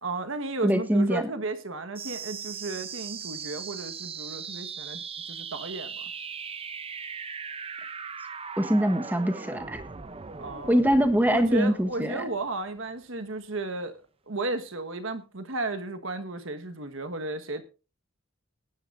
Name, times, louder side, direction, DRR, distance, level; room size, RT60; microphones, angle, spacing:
voice 1, 0.0-6.1 10.4-10.8 11.3-14.0 14.3-17.6, right 2 dB, 65° right, 9 dB, 1.4 m, -34 dB
voice 2, 0.6-1.3 8.6-9.8 10.7-12.2, equal, 10° right, 9 dB, 1.1 m, -23 dB
sound 1, 1.9-13.0, right 6 dB, 25° right, 0.7 m, -39 dB
18.5 x 10.5 x 2.6 m, 0.30 s
head